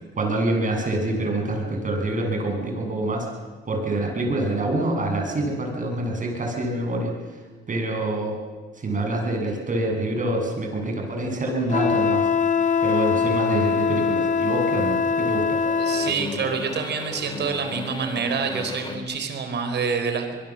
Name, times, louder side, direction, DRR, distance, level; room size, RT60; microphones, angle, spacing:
voice 1, 0.2-3.3 3.6-7.1 7.7-8.4 8.8-12.3 12.8-15.6, right 2 dB, 40° right, 1 dB, 7.9 m, -26 dB
Wind instrument woodwind instrument, 11.7-16.2, left 6 dB, 40° left, 1.6 m, -22 dB
sound 1, 12.6-19.0, left 3 dB, 20° left, 3.6 m, -38 dB
voice 2, 15.8-20.3, right 5 dB, 60° right, 7 dB, 4.5 m, -27 dB
24.5 x 21.5 x 7.7 m, 1.4 s
cardioid pair, 90°, 20 cm